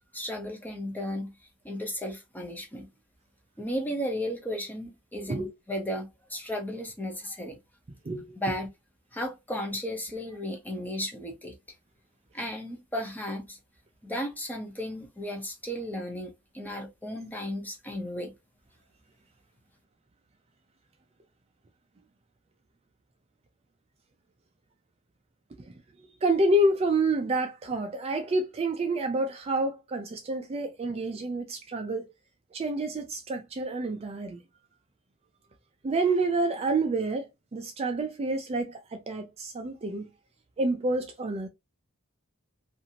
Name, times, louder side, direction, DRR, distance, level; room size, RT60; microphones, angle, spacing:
voice 1, 0.1-1.3 1.6-2.9 3.6-7.6 8.4-8.7 9.1-11.5 12.3-13.6 14.0-18.3, equal, 10° left, 0.7 m, -34 dB
voice 2, 8.0-8.5 25.6-32.1 32.5-34.4 35.8-40.1 40.6-41.5, right 2 dB, 30° right, 0.4 m, -28 dB
2.6 x 2.5 x 2.8 m
head